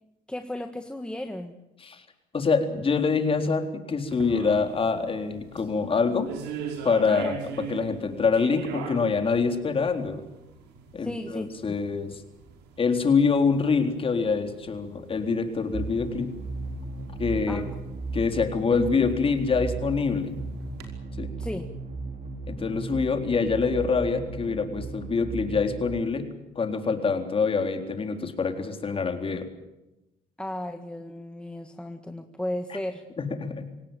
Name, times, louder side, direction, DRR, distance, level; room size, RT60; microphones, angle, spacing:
voice 1, 0.3-1.6 7.1-7.3 11.0-11.8 17.5-17.8 21.4-21.7 30.4-33.0, left 1 dB, 5° left, 6 dB, 1.8 m, -35 dB
voice 2, 2.3-6.3 6.8-7.4 7.7-10.2 10.9-12.2 12.8-16.3 17.2-17.6 18.1-20.3 21.2-21.3 22.5-26.3 26.6-29.5 33.2-33.7, left 5 dB, 35° left, 6 dB, 3.9 m, -25 dB
sound 1, 4.1-20.9, right 6 dB, 90° right, 5.3 m, -43 dB
sound 2, 15.7-26.0, right 3 dB, 45° right, 3.8 m, -36 dB
26.0 x 17.5 x 9.1 m, 0.95 s
cardioid pair, 110°, 17 cm